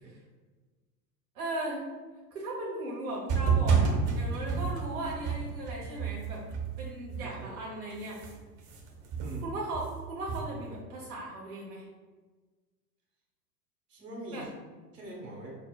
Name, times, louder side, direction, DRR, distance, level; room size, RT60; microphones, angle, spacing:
voice 1, 1.3-1.8 2.3-6.4 6.8-8.2 9.4-11.9 14.3-14.4, right 1 dB, 65° right, -4 dB, 1.1 m, -37 dB
sound 1, 3.3-7.6 7.9-10.8, right 5 dB, 45° right, 0.8 m, -31 dB
voice 2, 7.2-7.6 9.2-9.5 13.9-14.5 14.9-15.6, right 1 dB, 80° right, -3 dB, 1.3 m, -43 dB
5.4 x 2.1 x 2.3 m, 1.3 s
figure-of-eight pair, 90°, 48 cm